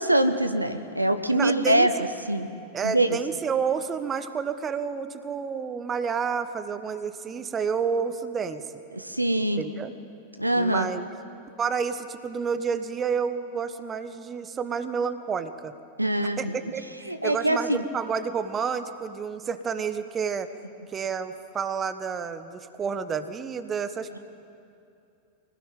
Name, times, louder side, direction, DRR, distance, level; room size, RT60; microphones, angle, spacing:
voice 1, 0.0-1.9 2.3-2.5 2.8-3.2 8.9-9.6 10.3-10.9 16.0-16.5 17.1-17.8, right 1 dB, 85° right, 8 dB, 1.2 m, -23 dB
voice 2, 1.3-1.9 2.7-8.6 9.6-9.9 10.5-11.1 11.6-15.7 16.4-16.8 17.2-20.5 20.9-24.2, right 6 dB, 20° right, 11 dB, 1.3 m, -30 dB
25.0 x 18.5 x 9.3 m, 2.6 s
figure-of-eight pair, 90°, 0 cm